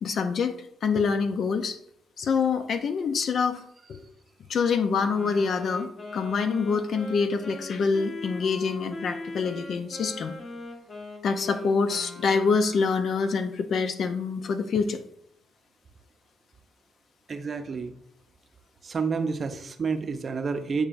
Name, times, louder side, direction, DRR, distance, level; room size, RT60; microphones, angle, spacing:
voice 1, 0.0-0.6 0.8-1.8 2.2-3.6 3.9-4.0 4.5-10.3 11.2-15.0, left 5 dB, 60° left, 8 dB, 0.6 m, -26 dB
Wind instrument woodwind instrument, 5.0-13.2, left 2 dB, 40° left, 1.4 m, -40 dB
voice 2, 17.3-17.9 18.8-20.9, right 5 dB, 40° right, 8 dB, 0.6 m, -29 dB
8.7 x 4.7 x 2.6 m, 0.73 s
cardioid pair, 90°, 0 cm